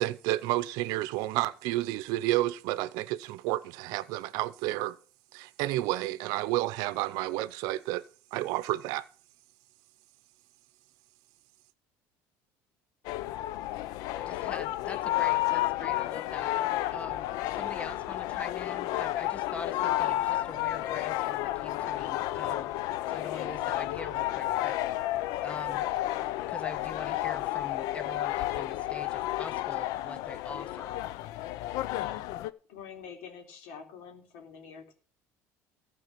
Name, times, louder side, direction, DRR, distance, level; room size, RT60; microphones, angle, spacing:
voice 1, 0.0-5.0 5.3-8.0 8.3-9.1, right 16 dB, 75° right, 0.6 m, -30 dB
sound 1, 13.0-32.5, left 15 dB, 70° left, 0.6 m, -31 dB
voice 2, 14.2-16.5 16.9-22.7 23.1-24.8 25.4-25.9 26.4-31.0, left 3 dB, 20° left, 1.3 m, -43 dB
voice 3, 31.7-32.2 32.7-34.9, left 7 dB, 85° left, 3.3 m, -46 dB
14.5 x 4.8 x 7.5 m
cardioid pair, 120°, 7 cm